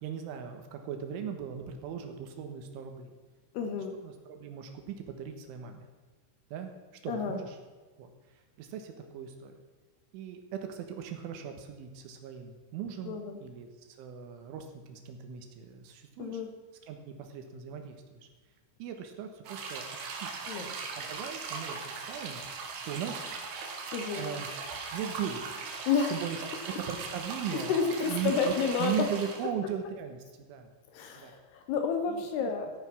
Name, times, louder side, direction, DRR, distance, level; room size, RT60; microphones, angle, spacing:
voice 1, 0.0-3.1 4.0-5.9 6.5-6.7 7.0-7.6 8.0-9.5 10.1-16.4 16.9-18.3 18.8-20.3 20.6-22.4 22.8-23.3 23.6-24.5 24.9-25.6 26.1-26.4 26.8-27.7 28.1-28.5 28.8-30.7 31.1-31.3 32.1-32.5, right 8 dB, 80° right, 5 dB, 3.5 m, -39 dB
voice 2, 3.5-4.0 7.1-7.4 13.1-13.4 16.2-16.5 20.5-20.7 23.9-24.3 25.9-26.1 27.5-29.1 30.9-32.7, left 5 dB, 75° left, 5 dB, 2.4 m, -30 dB
sound 1, 19.5-29.5, right 4 dB, 65° right, 3.1 m, -39 dB
14.5 x 8.9 x 6.1 m, 1.3 s
omnidirectional pair, 5.8 m